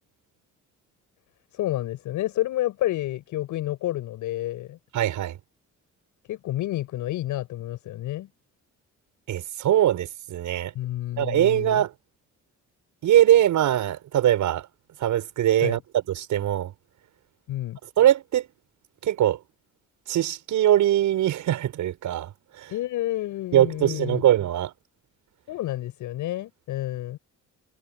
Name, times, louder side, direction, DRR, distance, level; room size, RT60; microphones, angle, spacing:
voice 1, 1.5-4.8 6.3-8.3 10.7-11.8 15.6-15.8 17.5-17.8 22.7-24.2 25.5-27.2, left 14 dB, 85° left, 7.2 m, -29 dB
voice 2, 4.9-5.4 9.3-10.7 11.2-11.9 13.0-14.7 15.0-16.7 18.0-18.4 19.0-19.4 20.1-22.3 22.6-22.7 23.5-24.7, right 12 dB, 80° right, 6.8 m, -22 dB
cardioid pair, 90°, 30 cm